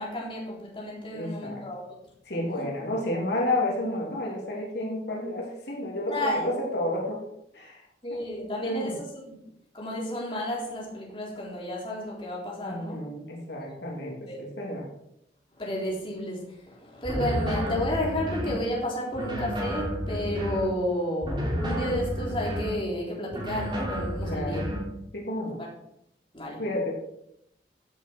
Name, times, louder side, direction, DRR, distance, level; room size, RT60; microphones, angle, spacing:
voice 1, 0.0-2.0 2.6-2.7 6.1-6.5 8.0-9.4 9.7-13.0 14.3-14.4 15.6-24.6 25.6-25.7 26.3-26.6, equal, 30° left, -3 dB, 3.8 m, -32 dB
voice 2, 1.1-1.6 2.2-7.2 7.5-7.8 8.3-9.0 12.6-14.9 24.3-24.7 25.1-25.6 26.6-27.0, left 1 dB, 75° left, -1 dB, 3.1 m, -31 dB
sound 1, 17.0-18.6 19.1-20.7 21.2-22.8 23.3-24.9, equal, 25° right, 3.2 m, -31 dB
16.0 x 8.1 x 4.6 m, 0.77 s
head